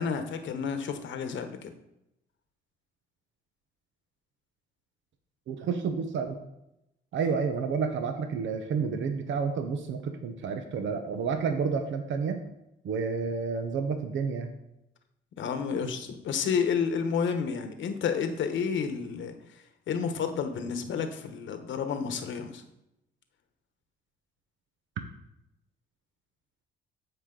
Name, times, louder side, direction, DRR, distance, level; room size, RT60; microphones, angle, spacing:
voice 1, 0.0-1.7 15.4-19.3 19.9-22.6, left 6 dB, 70° left, 7 dB, 1.2 m, -30 dB
voice 2, 5.5-6.4 7.1-12.4 12.8-14.5, right 5 dB, 75° right, 6 dB, 1.0 m, -30 dB
14.0 x 5.0 x 3.9 m, 0.86 s
cardioid pair, 90°, 20 cm